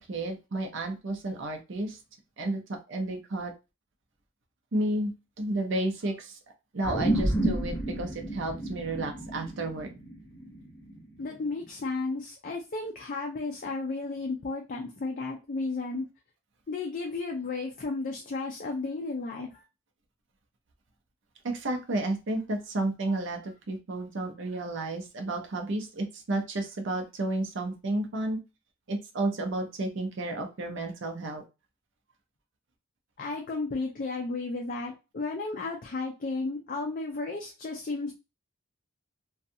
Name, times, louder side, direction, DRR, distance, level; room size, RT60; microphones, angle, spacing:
voice 1, 0.1-2.0 2.4-2.6 2.9-3.5 4.7-6.4 6.7-9.9 21.4-28.4 28.9-31.4, right 2 dB, 60° right, 3 dB, 0.6 m, -32 dB
sound 1, 6.8-11.6, right 1 dB, 10° left, 1.0 m, -31 dB
voice 2, 11.2-16.0 16.7-19.6 33.2-38.2, left 3 dB, 40° left, 1 dB, 0.4 m, -33 dB
2.6 x 2.3 x 2.6 m, 0.27 s
head